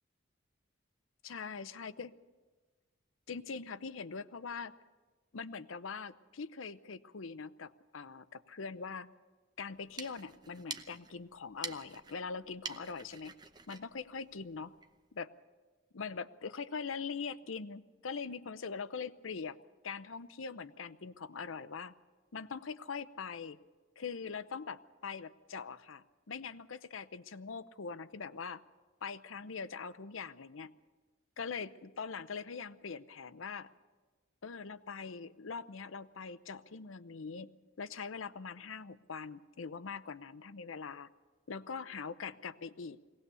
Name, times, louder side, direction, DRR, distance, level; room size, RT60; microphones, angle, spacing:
voice 1, 1.2-2.1 3.3-4.7 5.3-9.1 9.6-13.3 13.7-14.7 15.1-15.3 15.9-19.6 19.8-21.9 22.3-23.6 24.0-28.6 29.0-30.8 31.4-33.7 34.4-37.5 37.8-41.1 41.5-43.0, left 5 dB, 85° left, 15 dB, 0.7 m, -42 dB
sound 1, 9.7-15.0, right 5 dB, 20° right, 0.7 m, -48 dB
22.0 x 18.0 x 6.9 m, 1.3 s
head